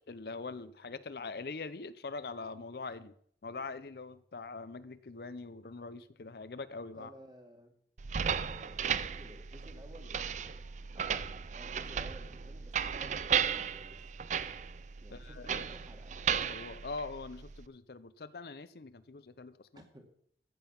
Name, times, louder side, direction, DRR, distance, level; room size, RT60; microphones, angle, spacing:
voice 1, 0.1-3.1 3.4-7.1 15.1-15.6 16.4-19.8, left 3 dB, 60° left, 13 dB, 0.6 m, -43 dB
voice 2, 6.9-7.8 8.2-10.7 10.9-14.1 15.0-16.2 19.8-20.0, equal, 25° right, 3 dB, 2.0 m, -55 dB
sound 1, 8.0-17.6, right 7 dB, 40° right, 0.4 m, -35 dB
14.5 x 7.6 x 5.8 m, 0.64 s
head